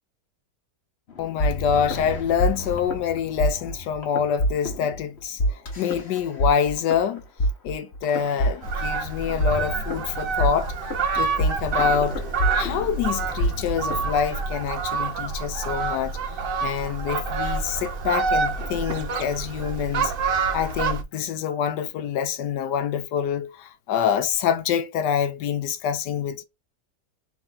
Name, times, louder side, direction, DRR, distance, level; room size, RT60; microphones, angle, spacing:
sound 1, 1.1-14.1, equal, 40° left, 1.3 m, -27 dB
voice 1, 1.2-7.2 7.6-10.7 11.1-12.2 12.5-16.2 16.6-20.1 20.5-26.4, left 8 dB, 85° left, 1.3 m, -26 dB
Fowl, 8.6-21.0, right 5 dB, 50° right, 0.7 m, -27 dB
3.8 x 3.2 x 3.9 m
omnidirectional pair, 1.8 m